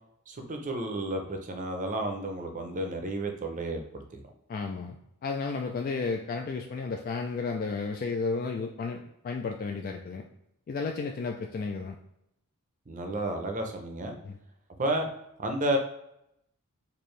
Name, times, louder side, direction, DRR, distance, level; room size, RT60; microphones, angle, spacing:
voice 1, 0.3-4.2 12.9-14.2 14.8-15.1 15.4-15.8, right 1 dB, 35° right, 4 dB, 0.6 m, -31 dB
voice 2, 4.5-5.0 5.2-10.3 10.7-12.0 14.2-14.4, left 4 dB, 40° left, 3 dB, 0.3 m, -33 dB
4.4 x 2.5 x 3.2 m, 0.81 s
head